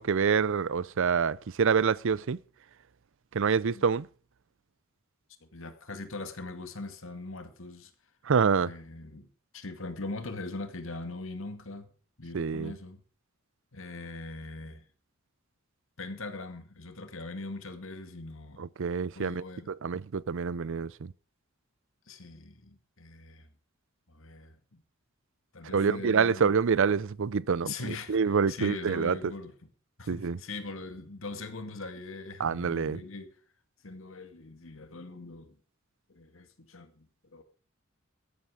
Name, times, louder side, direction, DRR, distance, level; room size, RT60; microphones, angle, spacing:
voice 1, 0.0-2.4 3.3-4.1 8.3-8.7 12.3-12.7 18.6-21.1 25.7-29.2 30.1-30.4 32.4-33.0, right 6 dB, 65° right, 0.5 m, -27 dB
voice 2, 5.4-7.9 8.6-9.3 9.5-11.9 12.2-13.0 13.7-14.8 16.0-18.7 19.2-19.7 22.1-23.5 24.1-24.8 25.5-26.5 27.6-29.5 30.0-33.3 33.8-35.6 36.1-37.4, left 3 dB, 70° left, 2.2 m, -41 dB
13.5 x 11.5 x 4.9 m
head